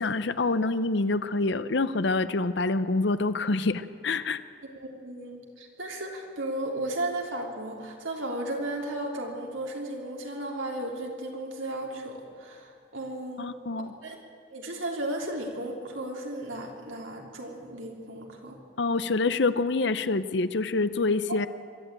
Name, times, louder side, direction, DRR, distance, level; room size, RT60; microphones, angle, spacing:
voice 1, 0.0-4.4 13.4-13.9 18.8-21.5, left 3 dB, 60° left, 13 dB, 0.7 m, -26 dB
voice 2, 4.7-13.5 13.8-14.2 14.5-18.6 21.3-21.4, right 1 dB, 80° right, 0 dB, 3.3 m, -35 dB
22.5 x 12.5 x 9.0 m, 2.1 s
head